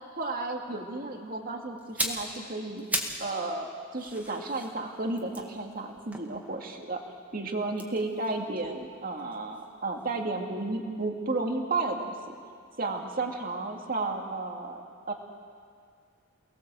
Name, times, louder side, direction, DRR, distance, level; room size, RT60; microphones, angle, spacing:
voice 1, 0.1-2.8 3.2-7.0 7.3-12.4 12.8-15.1, right 2 dB, 40° right, 2 dB, 2.4 m, -33 dB
sound 1, 1.8-3.3 3.6-6.9 7.7-9.7 10.0-10.2, right 1 dB, 5° right, 2.3 m, -37 dB
29.0 x 20.0 x 7.7 m, 2.2 s
head